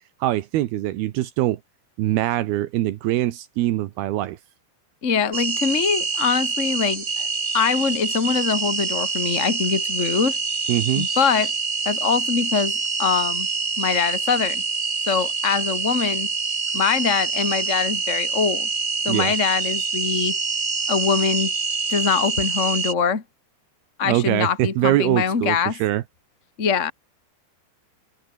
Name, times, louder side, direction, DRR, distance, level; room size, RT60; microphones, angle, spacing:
voice 1, 0.2-1.6 2.0-4.4 10.7-11.1 19.1-19.3 24.0-26.0, right 15 dB, 80° right, 3.0 m, -23 dB
voice 2, 5.0-7.3 7.5-10.4 10.9-11.5 11.8-13.5 13.8-14.6 15.1-16.3 16.7-18.7 19.0-20.4 20.9-21.5 21.9-23.2 24.0-25.8 26.6-26.9, left 6 dB, 35° left, 1.1 m, -23 dB
sound 1, 5.3-22.9, right 4 dB, 30° right, 2.9 m, -26 dB
omnidirectional pair, 4.7 m